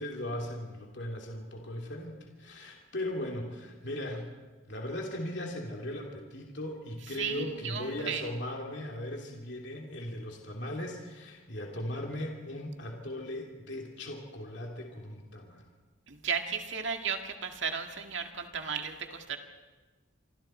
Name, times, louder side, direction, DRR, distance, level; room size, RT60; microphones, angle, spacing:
voice 1, 0.0-4.3 4.7-15.7, left 1 dB, 55° left, 0 dB, 2.9 m, -38 dB
voice 2, 7.1-8.2 16.1-19.4, right 6 dB, 60° right, 4 dB, 2.0 m, -35 dB
27.5 x 24.0 x 4.5 m, 1.3 s
head